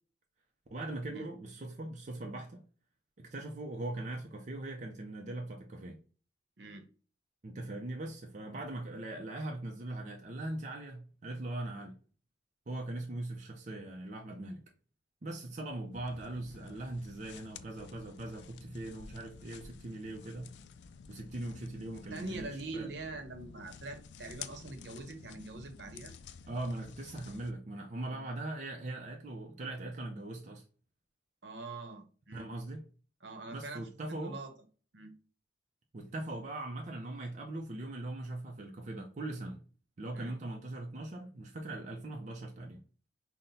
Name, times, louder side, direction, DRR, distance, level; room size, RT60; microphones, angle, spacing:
voice 1, 0.7-2.6 3.2-6.0 7.4-12.0 12.7-14.6 15.2-20.5 21.1-22.9 26.5-30.6 32.3-32.8 33.5-34.4 35.9-39.6 40.0-42.8, right 2 dB, 40° right, 0.5 m, -40 dB
sound 1, 15.9-27.5, left 6 dB, 70° left, 0.3 m, -51 dB
voice 2, 22.1-26.1 28.1-28.2 31.4-32.5 33.2-34.5 34.9-35.1 40.1-40.3, right 3 dB, 70° right, 0.8 m, -44 dB
5.6 x 2.1 x 2.7 m
head